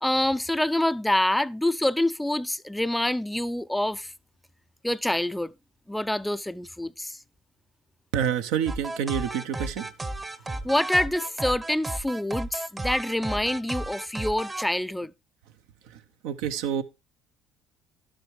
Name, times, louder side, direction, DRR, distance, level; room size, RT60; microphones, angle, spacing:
voice 1, 0.0-4.1 4.8-5.5 5.9-7.2 10.5-15.1, left 1 dB, 5° left, 0.4 m, -26 dB
voice 2, 8.1-9.9 15.8-16.8, right 9 dB, 70° right, 0.7 m, -28 dB
sound 1, 8.7-14.6, right 2 dB, 25° right, 0.8 m, -34 dB
11.5 x 7.7 x 3.2 m
hypercardioid pair, 60°, 0 cm